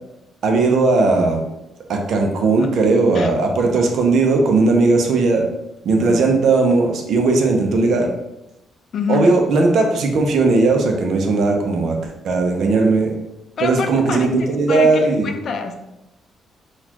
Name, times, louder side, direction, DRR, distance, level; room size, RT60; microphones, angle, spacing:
voice 1, 0.4-1.4 1.9-5.5 5.8-8.1 9.1-13.2 13.6-15.3, right 3 dB, 65° right, 3 dB, 0.6 m, -17 dB
voice 2, 2.6-3.3 6.0-6.3 8.9-9.3 13.6-15.7, left 6 dB, 60° left, 6 dB, 0.4 m, -27 dB
4.0 x 2.4 x 2.9 m, 0.92 s
cardioid pair, 90°, 0 cm